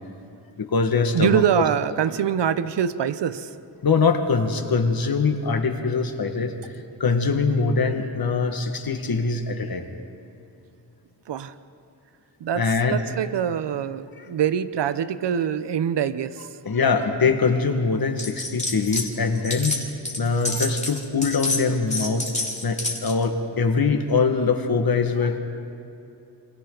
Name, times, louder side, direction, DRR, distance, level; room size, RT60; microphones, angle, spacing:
voice 1, 0.6-1.4 3.8-6.6 7.0-9.9 12.6-13.0 16.6-19.9 20.2-22.3 22.6-25.4, left 4 dB, 60° left, 5 dB, 1.9 m, -23 dB
voice 2, 1.1-3.5 11.3-11.5 12.4-16.5, right 9 dB, 80° right, 13 dB, 0.9 m, -24 dB
sound 1, 18.2-19.1 19.3-23.2, left 2 dB, 15° left, 2.8 m, -29 dB
28.5 x 25.0 x 4.0 m, 2.7 s
cardioid pair, 75°, 42 cm